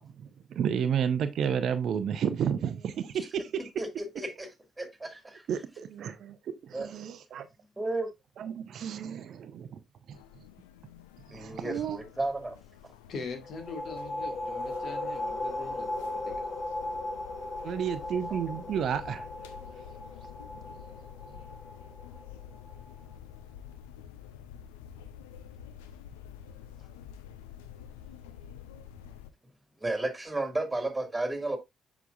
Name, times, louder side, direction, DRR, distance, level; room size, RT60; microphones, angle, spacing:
voice 1, 0.0-3.7 5.5-6.4 6.6-7.5 8.4-9.8 11.3-12.0 17.6-19.3, right 8 dB, 55° right, 0.6 m, -31 dB
voice 2, 3.8-4.5 4.8-5.4 6.7-6.9 7.8-8.1 11.3-12.6 12.8-12.9 29.8-31.6, right 2 dB, 15° right, 2.1 m, -33 dB
sound 1, 10.1-29.3, left 9 dB, 75° left, 0.5 m, -49 dB
voice 3, 13.1-16.3, left 4 dB, 55° left, 1.5 m, -42 dB
sound 2, 13.4-22.8, left 2 dB, 35° left, 1.5 m, -37 dB
6.9 x 5.9 x 2.5 m
figure-of-eight pair, 40°, 0 cm